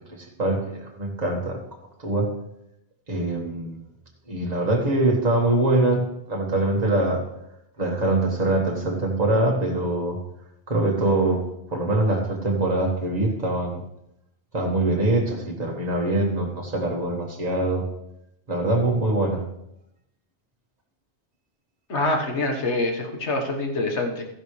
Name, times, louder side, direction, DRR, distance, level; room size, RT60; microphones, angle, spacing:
voice 1, 0.1-1.6 2.0-2.3 3.1-3.8 4.3-7.2 7.8-10.2 10.7-11.4 11.7-13.8 14.5-17.9 18.5-19.4, right 2 dB, 35° right, 0 dB, 1.8 m, -23 dB
voice 2, 21.9-24.2, left 2 dB, 75° left, 3 dB, 1.7 m, -25 dB
13.5 x 10.5 x 3.3 m, 0.80 s
omnidirectional pair, 1.2 m